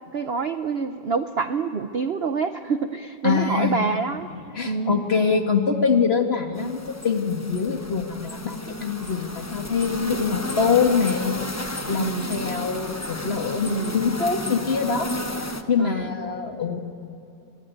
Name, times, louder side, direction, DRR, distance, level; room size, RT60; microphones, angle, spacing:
voice 1, 0.1-4.3 4.7-5.0 11.9-12.3 13.7-14.0 15.8-16.0, right 5 dB, 50° right, 9 dB, 0.8 m, -26 dB
voice 2, 3.2-3.8 4.3-11.4 11.9-16.8, left 5 dB, 35° left, 5 dB, 1.9 m, -24 dB
sound 1, 6.6-15.6, left 1 dB, 10° left, 0.9 m, -33 dB
25.0 x 22.5 x 9.3 m, 2.9 s
omnidirectional pair, 1.9 m